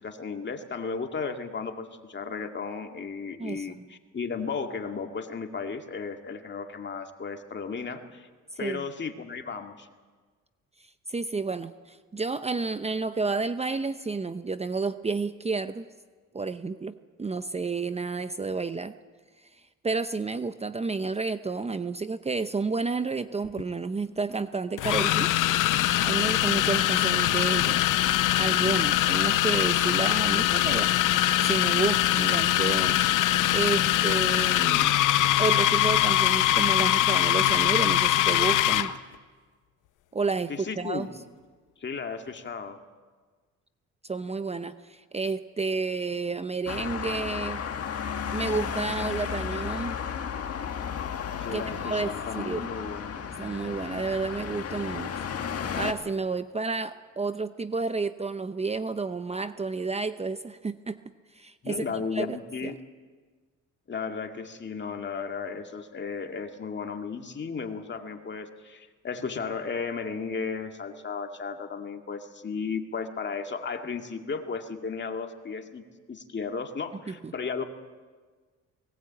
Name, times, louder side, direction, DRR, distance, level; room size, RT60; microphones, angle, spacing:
voice 1, 0.0-8.3 8.6-9.9 40.5-41.1 41.8-42.8 51.4-53.3 61.6-62.8 63.9-77.6, left 5 dB, 35° left, 5 dB, 2.1 m, -34 dB
voice 2, 11.1-15.8 16.3-18.9 19.4-19.5 19.8-25.3 26.0-27.8 28.4-33.0 33.5-35.0 35.4-38.9 40.1-41.1 44.0-47.6 48.3-50.0 51.5-52.7 53.4-55.1 55.8-61.0 61.3-61.8 62.1-62.3 62.6-62.7 77.1-77.3, right 4 dB, 20° right, 11 dB, 0.7 m, -30 dB
sound 1, 23.4-23.6 24.8-38.9, left 14 dB, 90° left, 0.9 m, -23 dB
Traffic noise roadway noise, 46.7-55.9, left 7 dB, 50° left, 1.9 m, -33 dB
19.0 x 19.0 x 8.7 m, 1.5 s
cardioid pair, 90°, 30 cm